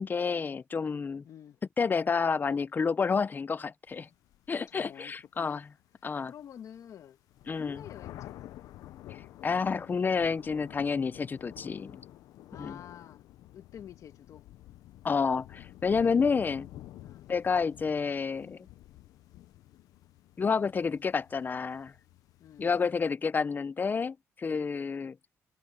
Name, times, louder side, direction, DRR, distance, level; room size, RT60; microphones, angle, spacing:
voice 1, 0.0-1.2 1.8-4.1 4.5-5.6 6.0-6.3 7.5-7.8 9.1-12.0 12.6-12.8 15.0-16.7 17.3-18.7 20.4-21.9 22.6-25.2, left 5 dB, 30° left, 0.6 m, -29 dB
voice 2, 1.2-1.6 4.7-5.7 6.0-7.2 7.5-8.5 12.5-13.3 13.5-14.4 15.9-16.4 17.0-17.3 22.4-22.7, left 9 dB, 65° left, 1.9 m, -49 dB
sound 1, 3.9-23.1, left 14 dB, 90° left, 0.8 m, -50 dB
cardioid pair, 105°, 6 cm